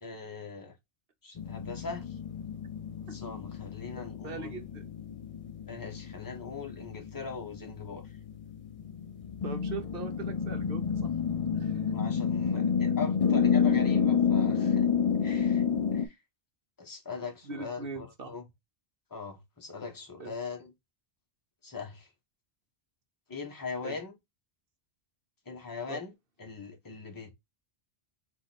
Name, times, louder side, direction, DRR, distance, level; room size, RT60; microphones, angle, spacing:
voice 1, 0.0-0.7 1.2-2.2 3.1-4.6 5.7-8.2 11.9-14.9 15.2-15.6 15.9-16.2 16.8-18.4 19.1-20.7 21.6-22.1 23.3-24.2 25.5-26.1 26.4-27.3, left 5 dB, 20° left, 1.1 m, -40 dB
sound 1, 1.4-16.1, left 7 dB, 50° left, 0.4 m, -30 dB
voice 2, 4.2-4.9 9.4-11.1 11.6-11.9 17.4-18.3 20.2-20.3 23.8-23.9 25.9-26.0, right 5 dB, 60° right, 1.1 m, -41 dB
4.0 x 2.8 x 4.0 m
omnidirectional pair, 1.1 m